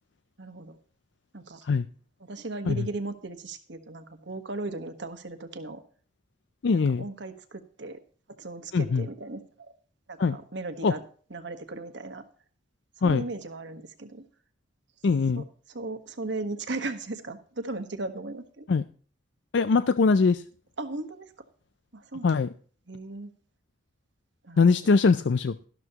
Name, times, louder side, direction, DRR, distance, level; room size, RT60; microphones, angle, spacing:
voice 1, 0.4-0.8 1.3-1.7 2.2-5.8 6.7-8.0 8.3-9.7 10.1-11.0 11.3-12.2 13.0-14.2 15.4-18.7 20.8-21.3 21.9-22.3 22.9-23.3 24.4-24.9, right 2 dB, 60° right, 8 dB, 1.3 m, -37 dB
voice 2, 6.6-7.0 8.7-9.0 10.2-10.4 10.8-10.9 13.0-13.2 15.0-15.4 18.7-18.8 19.5-20.4 22.2-22.5 24.6-25.6, left 4 dB, 60° left, 13 dB, 0.4 m, -22 dB
13.0 x 12.0 x 2.9 m, 0.43 s
head